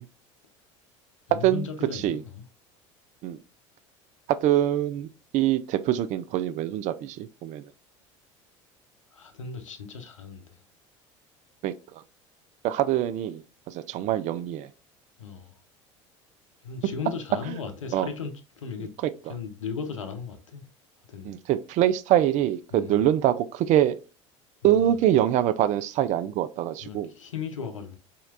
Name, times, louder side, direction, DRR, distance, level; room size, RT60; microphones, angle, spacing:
voice 1, 1.3-2.4 9.1-10.5 15.2-15.5 16.6-18.9 19.2-20.6 21.1-21.3 22.7-23.0 24.6-25.1 26.8-28.0, left 6 dB, 90° left, 0.7 m, -36 dB
voice 2, 4.3-5.1 5.3-7.6 11.6-11.7 12.6-13.4 13.7-14.7 17.9-18.1 19.0-19.1 21.2-24.0 24.6-27.1, right 12 dB, 50° right, 0.4 m, -24 dB
4.3 x 2.8 x 2.4 m
hypercardioid pair, 70°, 16 cm